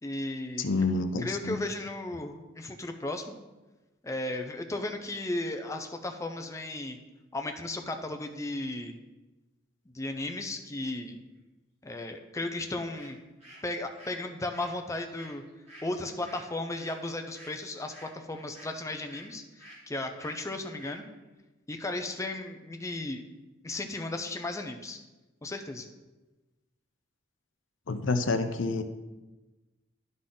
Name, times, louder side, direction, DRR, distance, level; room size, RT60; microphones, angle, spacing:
voice 1, 0.0-0.7 1.2-3.3 4.0-7.0 7.3-8.9 9.9-11.2 11.8-13.2 13.6-15.4 15.8-21.0 21.7-23.2 23.6-25.0 25.4-25.9, left 2 dB, 15° left, 5 dB, 0.5 m, -35 dB
voice 2, 0.6-1.6 27.9-28.8, left 3 dB, 75° left, 9 dB, 0.6 m, -28 dB
sound 1, 12.5-12.6 12.9-19.3 19.6-19.8 20.2-20.4 20.8-21.0, equal, 35° right, 2.3 m, -51 dB
11.5 x 4.0 x 3.8 m, 1.1 s
head